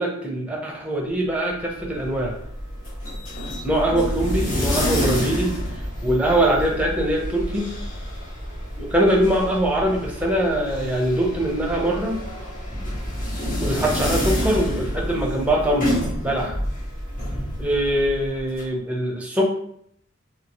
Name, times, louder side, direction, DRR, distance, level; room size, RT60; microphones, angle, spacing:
voice 1, 0.0-2.3 3.4-5.6 6.0-7.7 8.8-12.2 13.6-16.5 17.6-19.5, right 1 dB, 5° right, -2 dB, 0.7 m, -22 dB
sound 1, 1.6-18.6, equal, 40° left, 1.0 m, -28 dB
2.9 x 2.8 x 2.9 m, 0.68 s
head